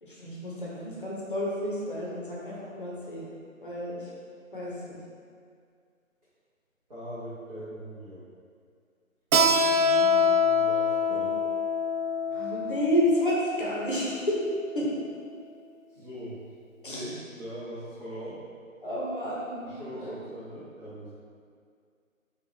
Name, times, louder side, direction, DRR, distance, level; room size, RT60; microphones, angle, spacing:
voice 1, 0.0-3.2 3.6-4.1 4.5-5.0 9.7-10.3 11.1-11.3 12.3-14.4 14.7-14.9 16.8-17.1 18.8-20.1, equal, 40° left, -6 dB, 0.8 m, -31 dB
voice 2, 6.9-8.3 9.8-11.3 15.9-16.4 16.9-18.4 19.6-21.1, right 1 dB, 35° right, -14 dB, 1.1 m, -41 dB
Keyboard (musical), 9.3-14.6, left 3 dB, 80° right, 0.5 m, -25 dB
5.0 x 2.4 x 3.2 m, 2.2 s
figure-of-eight pair, 160°, 41 cm